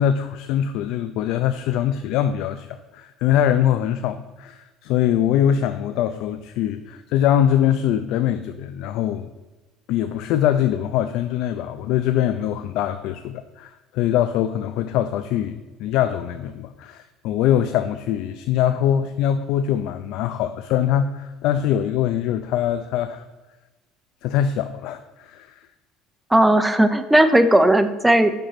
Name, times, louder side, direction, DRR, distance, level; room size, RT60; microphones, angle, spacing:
voice 1, 0.0-2.7 2.9-9.3 9.9-23.2 24.2-25.5, left 10 dB, 65° left, 9 dB, 0.3 m, -22 dB
voice 2, 26.3-28.3, right 1 dB, 5° right, 9 dB, 0.4 m, -16 dB
5.4 x 5.0 x 5.6 m, 1.2 s
cardioid pair, 160°, 0 cm